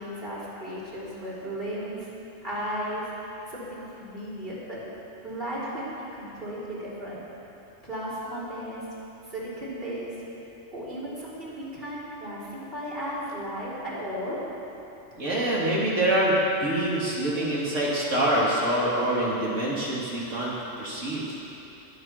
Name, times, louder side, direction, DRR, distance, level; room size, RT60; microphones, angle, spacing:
voice 1, 0.0-2.1 2.4-3.1 3.5-4.9 5.2-7.2 7.8-8.8 9.3-10.1 10.7-14.4, equal, 45° right, -9 dB, 4.0 m, -35 dB
voice 2, 15.2-21.2, right 1 dB, 70° right, -6 dB, 3.2 m, -25 dB
21.0 x 7.8 x 6.0 m, 3.0 s
omnidirectional pair, 1.3 m